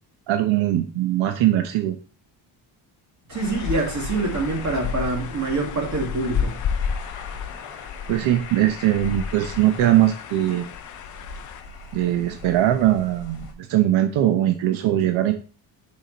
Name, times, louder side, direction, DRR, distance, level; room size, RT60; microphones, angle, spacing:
voice 1, 0.3-2.0 8.1-10.7 11.9-15.3, right 13 dB, 80° right, 0.9 m, -21 dB
sound 1, 3.3-13.5, left 4 dB, 60° left, 1.6 m, -40 dB
voice 2, 3.3-6.6, right 3 dB, 35° right, 2.1 m, -25 dB
sound 2, 3.4-11.6, left 7 dB, 40° left, 0.5 m, -32 dB
6.4 x 5.1 x 4.0 m
cardioid pair, 160°, 47 cm